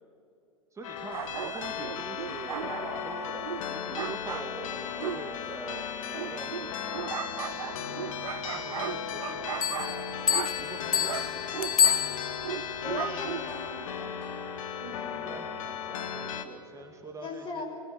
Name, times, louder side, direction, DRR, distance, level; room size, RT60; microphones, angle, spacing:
voice 1, 0.7-10.1 10.6-12.1 15.0-17.6, right 3 dB, 15° right, 2 dB, 2.8 m, -44 dB
sound 1, 0.8-16.5, left 8 dB, 65° left, 2.0 m, -36 dB
sound 2, 1.1-13.7, right 9 dB, 75° right, 0.7 m, -38 dB
sound 3, 9.6-12.6, left 9 dB, 80° left, 0.6 m, -28 dB
voice 2, 12.7-14.1 14.8-15.1 17.2-17.6, left 3 dB, 30° left, 3 dB, 5.6 m, -39 dB
27.0 x 22.0 x 7.3 m, 2.6 s
hypercardioid pair, 95°, 18 cm